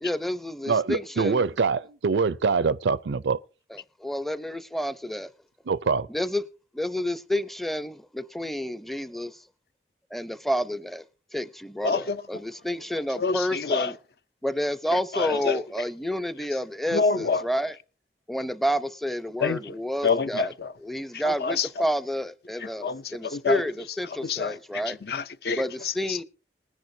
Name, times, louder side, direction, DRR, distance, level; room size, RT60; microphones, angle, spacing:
voice 1, 0.0-1.4 3.7-5.3 6.1-6.4 6.7-9.4 10.1-11.0 11.3-12.0 12.3-13.9 14.4-17.7 18.3-20.5 20.8-23.7 24.0-25.0 25.6-26.2, equal, ahead, 0.5 m, -29 dB
voice 2, 0.7-3.4 5.7-6.1, right 5 dB, 90° right, 0.5 m, -24 dB
voice 3, 11.8-12.4 13.1-13.9 14.9-15.8 16.9-17.4 19.4-20.7 21.1-21.9 22.6-23.6 24.0-26.2, left 4 dB, 60° left, 0.6 m, -28 dB
20.0 x 10.5 x 2.7 m
head